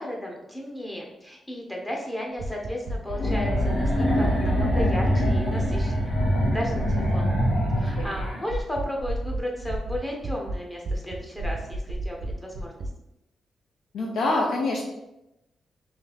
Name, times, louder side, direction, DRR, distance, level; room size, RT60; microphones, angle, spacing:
voice 1, 0.0-6.2 6.5-7.3 7.7-12.7, left 1 dB, 10° left, -1 dB, 0.6 m, -34 dB
sound 1, 2.4-7.1 7.3-7.7 8.0-10.5 10.8-12.9, right 2 dB, 55° right, 0.6 m, -31 dB
sound 2, 3.1-8.4, equal, 55° left, 1.3 m, -24 dB
voice 2, 7.7-8.1 13.9-14.8, left 2 dB, 80° left, -3 dB, 0.6 m, -26 dB
3.2 x 3.1 x 3.8 m, 0.90 s
wide cardioid pair, 175°, 0 cm